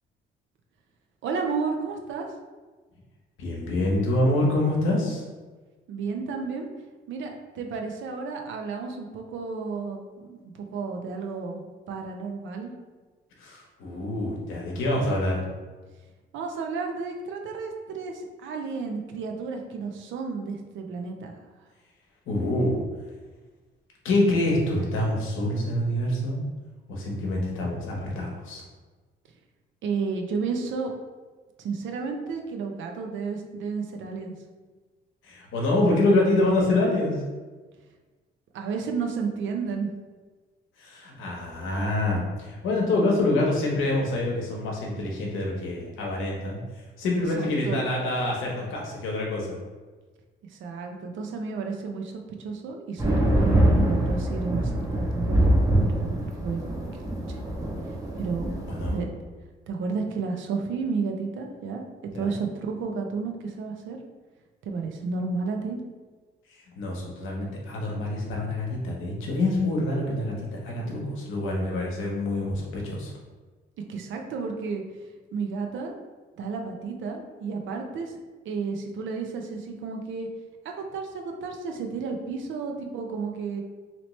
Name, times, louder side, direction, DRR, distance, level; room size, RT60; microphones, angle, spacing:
voice 1, 1.2-2.3 5.9-6.7 7.1-12.7 16.3-21.4 29.8-30.9 31.6-34.4 38.5-39.9 47.4-47.8 50.5-56.6 58.2-58.5 58.9-59.1 59.7-61.9 62.1-64.0 64.6-65.8 73.9-74.8 75.3-75.9 76.4-78.1 78.4-80.3 80.6-83.6, right 4 dB, 75° right, 3 dB, 0.6 m, -32 dB
voice 2, 3.4-5.2 13.4-15.4 22.3-22.8 24.0-26.4 26.9-28.6 35.2-37.2 40.8-46.6 47.0-49.6 58.7-59.0 62.1-62.4 66.8-73.1, left 1 dB, 85° left, -2 dB, 0.9 m, -26 dB
sound 1, 53.0-59.0, right 1 dB, 15° right, 0.7 m, -24 dB
3.0 x 2.9 x 3.1 m, 1.3 s
cardioid pair, 90°, 20 cm